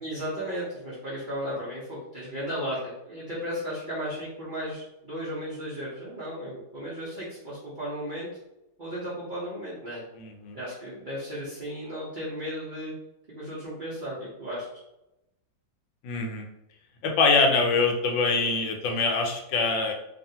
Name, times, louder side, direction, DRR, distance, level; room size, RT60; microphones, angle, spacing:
voice 1, 0.0-8.3 8.8-10.0 10.5-12.9 13.3-14.7, equal, 85° right, -8 dB, 0.4 m, -35 dB
voice 2, 10.1-10.6 16.0-16.5 17.0-19.9, left 4 dB, 90° left, 2 dB, 1.3 m, -24 dB
2.9 x 2.5 x 2.7 m, 0.90 s
omnidirectional pair, 2.0 m